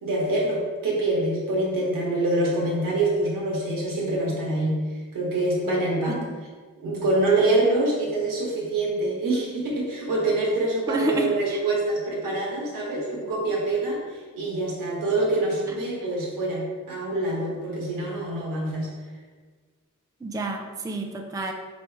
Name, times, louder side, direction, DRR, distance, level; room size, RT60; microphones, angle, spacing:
voice 1, 0.0-4.9 5.1-6.2 6.8-18.9, right 2 dB, 85° right, -3 dB, 1.4 m, -25 dB
voice 2, 10.9-11.6 15.7-15.8 20.2-21.5, right 1 dB, 10° right, 3 dB, 0.4 m, -29 dB
5.0 x 3.1 x 3.3 m, 1.4 s
wide cardioid pair, 115°, 32 cm